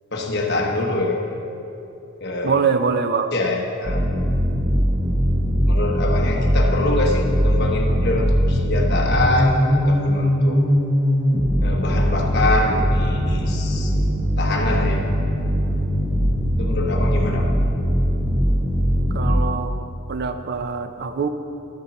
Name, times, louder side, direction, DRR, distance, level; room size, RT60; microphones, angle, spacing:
voice 1, 0.1-1.2 2.2-2.6 3.3-4.0 5.7-10.6 11.6-13.9 14.4-15.1 16.6-17.6, left 2 dB, 50° left, 0 dB, 1.1 m, -24 dB
voice 2, 2.4-3.3 19.1-21.3, right 5 dB, 50° right, 9 dB, 0.4 m, -23 dB
sound 1, 3.8-19.4, equal, 20° right, 1.3 m, -20 dB
13.0 x 6.9 x 4.1 m, 2.8 s
head